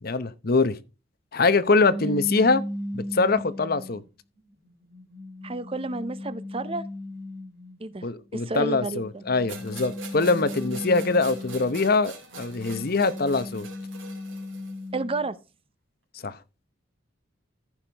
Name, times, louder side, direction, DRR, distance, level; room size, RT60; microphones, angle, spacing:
voice 1, 0.0-0.8 1.3-2.6 2.9-4.0 8.0-13.7 16.2-16.3, left 3 dB, 50° left, 0.8 m, -23 dB
sound 1, 1.8-4.0 4.6-7.8 8.9-11.9 12.3-15.3, left 1 dB, 60° right, 2.2 m, -36 dB
voice 2, 5.4-6.8 7.8-8.1 8.3-9.3 14.9-15.4, right 2 dB, 30° right, 0.7 m, -31 dB
sound 2, 9.5-14.8, right 4 dB, 75° right, 3.5 m, -43 dB
14.5 x 5.8 x 3.4 m
head